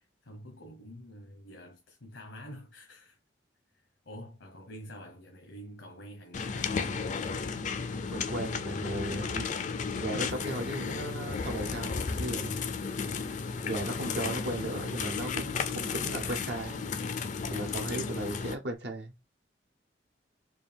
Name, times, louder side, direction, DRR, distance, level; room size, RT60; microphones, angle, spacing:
voice 1, 0.0-3.2 3.7-7.1, equal, 80° left, 0.9 m, -47 dB
sound 1, 6.3-18.5, left 5 dB, 40° left, 0.4 m, -34 dB
voice 2, 8.1-9.5 10.0-12.6 13.6-16.8 17.5-19.1, right 1 dB, 65° right, 0.7 m, -36 dB
4.5 x 2.5 x 3.4 m
head